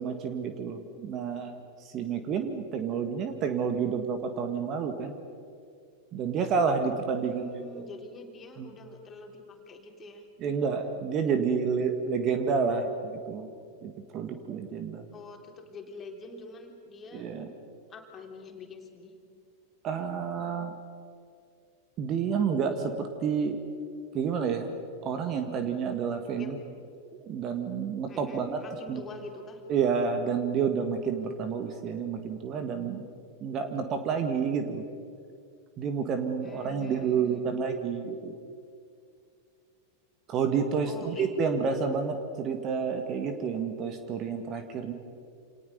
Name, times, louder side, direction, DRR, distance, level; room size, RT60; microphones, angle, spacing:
voice 1, 0.0-1.5 1.9-5.1 6.1-7.4 8.6-8.7 10.4-13.5 13.8-15.0 17.1-17.5 19.8-20.7 22.0-23.6 24.1-24.6 25.0-26.5 27.2-28.6 28.9-29.0 29.7-33.0 33.4-34.9 35.8-38.4 40.3-44.9, right 6 dB, 35° right, 7 dB, 2.1 m, -29 dB
voice 2, 7.2-10.2 15.1-17.3 17.9-19.1 26.4-26.5 28.1-29.6 36.4-37.5 40.8-41.3, left 3 dB, 25° left, 2 dB, 3.7 m, -45 dB
28.5 x 28.0 x 5.4 m, 2.3 s
figure-of-eight pair, 90°, 0 cm